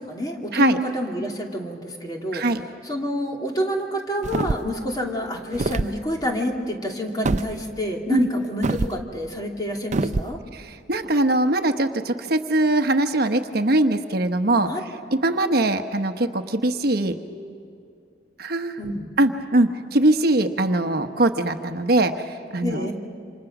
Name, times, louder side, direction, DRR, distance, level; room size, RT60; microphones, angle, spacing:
voice 1, 0.1-2.4 2.8-10.4 14.7-14.8 18.8-19.1 22.6-22.9, equal, 20° left, 1 dB, 2.7 m, -28 dB
sound 1, 4.2-4.8 5.5-5.9 7.2-7.5 8.6-9.0 9.9-10.3, right 3 dB, 40° right, 0.5 m, -24 dB
voice 2, 10.5-14.7 15.1-17.1 18.4-18.8 19.2-22.9, right 2 dB, 60° right, 7 dB, 1.1 m, -21 dB
28.5 x 26.5 x 6.1 m, 2.6 s
head